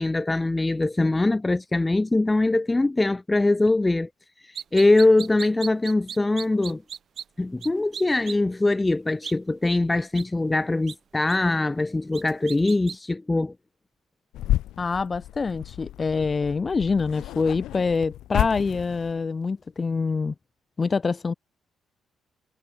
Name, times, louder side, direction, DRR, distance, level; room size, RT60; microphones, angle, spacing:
voice 1, 0.0-4.1 4.4-6.8 7.4-13.5, left 2 dB, 15° left, 1.9 m, -22 dB
sound 1, 4.6-7.2 7.6-7.7 7.9-8.3 9.2-9.3 10.1-10.2 10.9-11.0 11.3-11.4 12.1-13.0, right 8 dB, 55° right, 7.5 m, -36 dB
sound 2, 14.3-19.2, left 14 dB, 85° left, 1.8 m, -31 dB
voice 2, 14.8-20.3 20.8-21.3, left 4 dB, 30° left, 5.8 m, -25 dB
cardioid pair, 90°, 0 cm